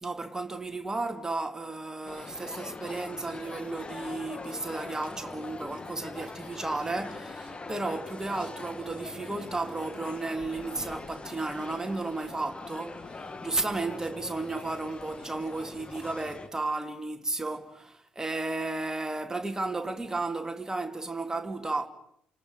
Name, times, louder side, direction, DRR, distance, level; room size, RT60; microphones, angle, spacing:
voice 1, 0.0-21.9, right 2 dB, 15° right, 2.4 m, -33 dB
sound 1, 2.1-16.5, left 3 dB, 25° left, 1.8 m, -42 dB
28.0 x 27.5 x 5.1 m
figure-of-eight pair, 45°, 4 cm